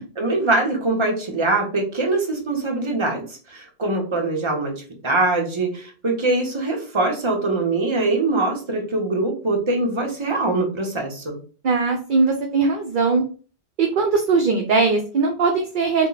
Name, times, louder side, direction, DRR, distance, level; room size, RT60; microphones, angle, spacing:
voice 1, 0.2-11.4, right 2 dB, 30° right, 1 dB, 0.9 m, -23 dB
voice 2, 11.6-13.2 13.8-16.1, right 4 dB, 60° right, 4 dB, 0.7 m, -20 dB
3.5 x 2.2 x 3.9 m, 0.38 s
omnidirectional pair, 1.1 m